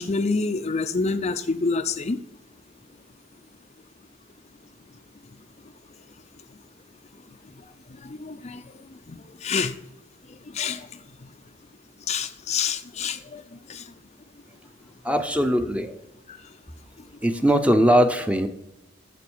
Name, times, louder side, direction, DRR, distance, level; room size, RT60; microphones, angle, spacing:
voice 1, 0.0-2.2 7.6-9.8 10.3-11.3 12.1-13.9 16.3-16.5, left 4 dB, 35° left, 8 dB, 0.5 m, -29 dB
voice 2, 15.0-15.9 17.2-18.5, equal, 5° right, 8 dB, 0.7 m, -20 dB
9.2 x 7.1 x 7.1 m, 0.91 s
head